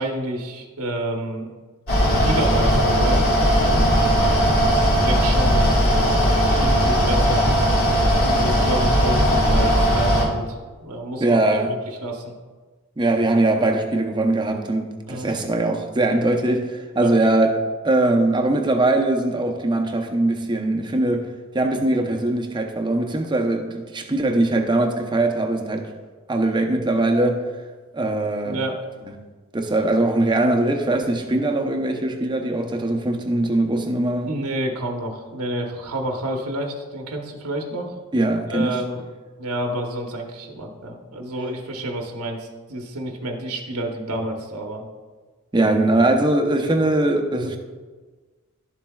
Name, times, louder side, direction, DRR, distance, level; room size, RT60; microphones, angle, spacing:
voice 1, 0.0-1.5 2.2-3.3 3.7-3.9 4.5-7.4 8.1-11.4 12.0-12.2 15.1-15.3 16.9-17.1 28.4-28.8 34.3-38.0 38.5-39.0 39.4-44.8, right 1 dB, 90° right, 1.1 m, -29 dB
Mechanical fan, 1.9-10.2, equal, 65° left, 2.3 m, -18 dB
voice 2, 11.2-11.8 13.0-17.6 17.8-21.3 21.5-25.9 26.3-27.4 27.9-28.6 29.0-29.1 29.5-34.3 38.1-38.7 45.5-47.6, right 2 dB, 20° right, 0.7 m, -21 dB
11.5 x 7.3 x 2.3 m
head